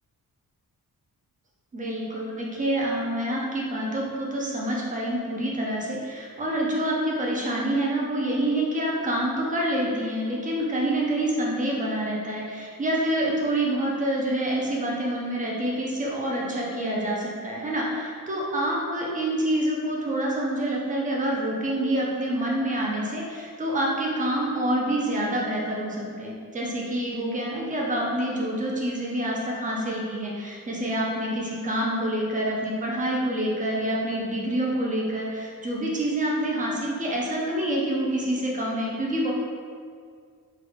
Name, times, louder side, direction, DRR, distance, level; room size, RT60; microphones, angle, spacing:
voice 1, 1.7-39.3, right 1 dB, 25° right, -3 dB, 0.5 m, -27 dB
3.4 x 2.3 x 3.4 m, 2.1 s
wide cardioid pair, 170°, 33 cm